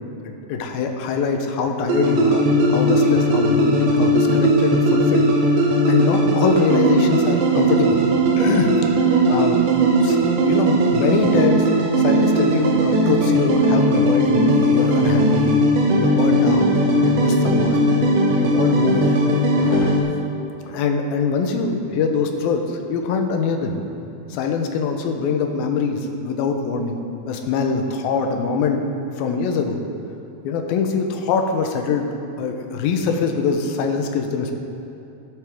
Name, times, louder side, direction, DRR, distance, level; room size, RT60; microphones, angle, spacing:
voice 1, 0.2-5.3 5.6-8.0 8.4-8.7 9.1-9.7 10.0-11.7 12.0-15.6 16.0-17.9 18.4-19.2 19.6-20.0 20.7-23.8 24.3-28.8 29.2-29.8 30.4-32.1 32.4-34.5, left 5 dB, 80° left, 4 dB, 2.6 m, -23 dB
sound 1, 1.9-20.0, right 1 dB, 70° right, 2.3 m, -18 dB
17.0 x 7.9 x 3.6 m, 2.8 s
omnidirectional pair, 4.3 m